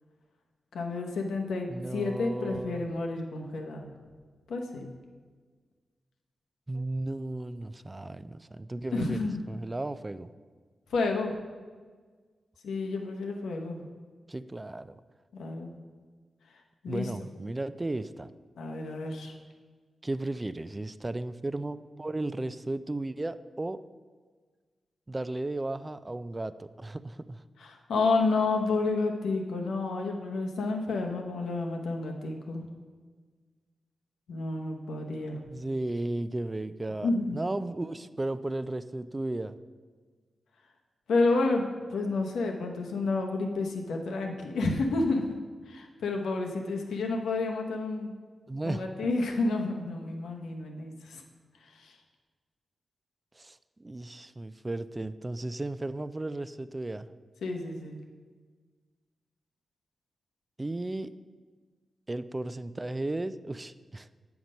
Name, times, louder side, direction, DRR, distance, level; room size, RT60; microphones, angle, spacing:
voice 1, 0.7-3.9 4.5-4.9 8.9-9.4 10.9-11.3 12.6-13.8 15.3-15.7 16.8-17.0 18.6-19.3 27.6-32.6 34.3-35.4 37.0-37.4 41.1-45.2 45.7-48.1 48.6-51.2 51.8-51.9 57.4-58.0, left 3 dB, 90° left, 2 dB, 0.9 m, -30 dB
voice 2, 1.7-2.9 6.7-9.2 9.5-10.3 14.3-15.0 16.9-18.3 20.0-23.8 25.1-27.4 35.5-39.6 48.5-49.1 53.3-57.1 60.6-61.1 62.1-64.1, right 2 dB, 25° right, 13 dB, 0.4 m, -35 dB
8.0 x 5.8 x 5.2 m, 1.5 s
cardioid pair, 60°, 0 cm